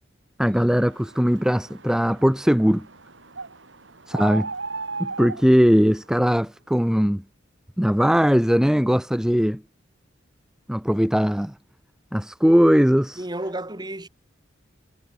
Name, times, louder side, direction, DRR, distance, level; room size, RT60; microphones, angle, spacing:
voice 1, 0.4-2.9 4.1-4.5 5.0-7.2 7.8-9.6 10.7-11.5 12.1-13.2, equal, 5° right, 0.8 m, -19 dB
sound 1, 0.7-6.3, right 4 dB, 80° right, 3.6 m, -37 dB
voice 2, 13.2-14.1, right 1 dB, 25° right, 5.0 m, -31 dB
head